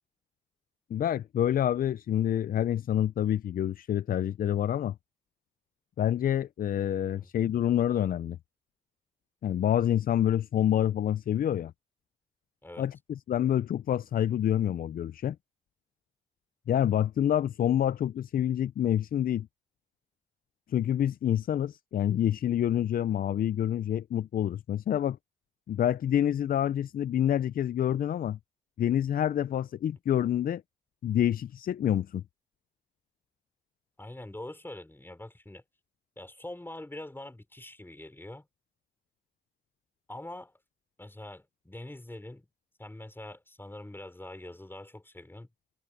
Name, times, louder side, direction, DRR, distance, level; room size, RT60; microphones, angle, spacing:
voice 1, 0.9-4.9 6.0-8.4 9.4-11.7 12.8-15.4 16.7-19.5 20.7-25.2 25.7-28.4 28.8-30.6 31.0-32.2, left 10 dB, 60° left, 0.5 m, -27 dB
voice 2, 34.0-35.6 36.2-38.5 40.1-40.5 41.0-42.5 42.8-45.5, left 1 dB, 15° left, 5.5 m, -44 dB
cardioid pair, 70°, 17 cm